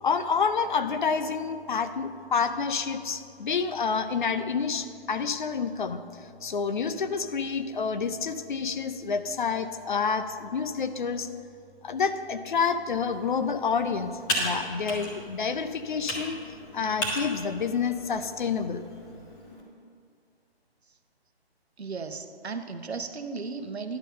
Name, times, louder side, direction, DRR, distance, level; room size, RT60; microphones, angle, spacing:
voice 1, 0.0-6.0 6.4-11.3 11.8-16.4 16.7-18.8, left 5 dB, 50° left, 10 dB, 0.6 m, -28 dB
Computer keyboard, 12.9-19.6, equal, 10° left, 0.7 m, -36 dB
voice 2, 21.8-24.0, right 4 dB, 80° right, 8 dB, 0.9 m, -35 dB
10.5 x 5.4 x 6.3 m, 2.3 s
figure-of-eight pair, 145°, 32 cm